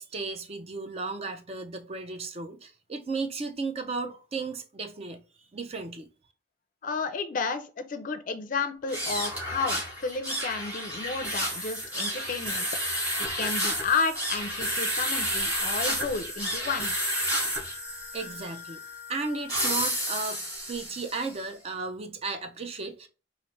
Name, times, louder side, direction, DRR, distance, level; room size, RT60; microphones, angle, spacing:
voice 1, 0.0-5.2 5.5-6.1 17.4-17.5 18.1-18.8 19.1-20.4 20.7-23.1, right 3 dB, 30° right, 0.4 m, -34 dB
voice 2, 6.8-12.7 13.2-16.9, left 4 dB, 45° left, 0.4 m, -32 dB
sound 1, 8.8-21.3, equal, 10° right, 1.8 m, -31 dB
4.1 x 2.5 x 3.1 m
head